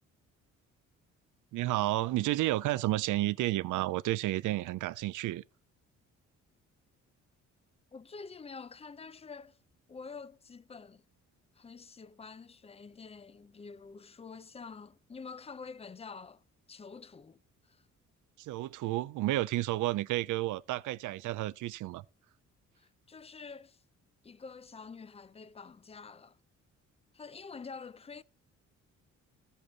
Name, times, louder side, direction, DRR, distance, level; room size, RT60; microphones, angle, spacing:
voice 1, 1.5-5.4 18.4-22.0, right 16 dB, 80° right, 0.6 m, -31 dB
voice 2, 7.9-9.6 9.9-11.0 11.5-16.4 16.7-17.8 22.8-23.8 24.2-26.4 27.1-28.2, left 5 dB, 20° left, 0.5 m, -47 dB
14.0 x 8.2 x 4.0 m
cardioid pair, 90°, 30 cm